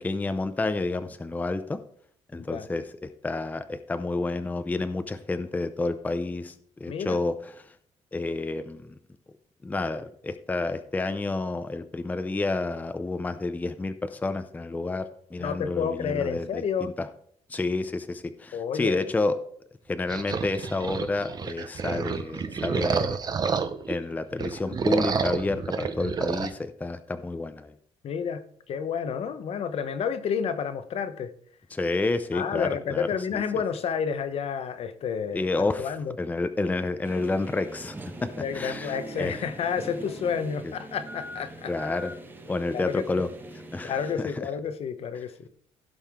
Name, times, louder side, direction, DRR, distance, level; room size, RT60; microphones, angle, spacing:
voice 1, 0.0-1.8 2.3-6.5 6.8-7.7 8.1-9.0 9.6-17.1 17.5-19.3 19.9-23.2 23.9-27.7 31.7-33.4 35.3-35.9 36.2-38.3 38.5-39.4 40.6-40.7 41.7-42.1 42.5-43.3 43.7-44.4, left 3 dB, 15° left, 10 dB, 0.5 m, -30 dB
voice 2, 15.4-16.9 18.5-19.1 28.0-31.3 32.3-35.5 35.8-36.1 38.4-41.7 42.7-43.2 43.8-45.5, left 7 dB, 60° left, 11 dB, 0.8 m, -30 dB
sound 1, 20.1-24.0 24.3-26.5, right 5 dB, 35° right, 0.8 m, -29 dB
sound 2, 37.0-44.1, right 1 dB, 15° right, 1.1 m, -41 dB
16.0 x 5.5 x 3.6 m, 0.62 s
cardioid pair, 135°, 12 cm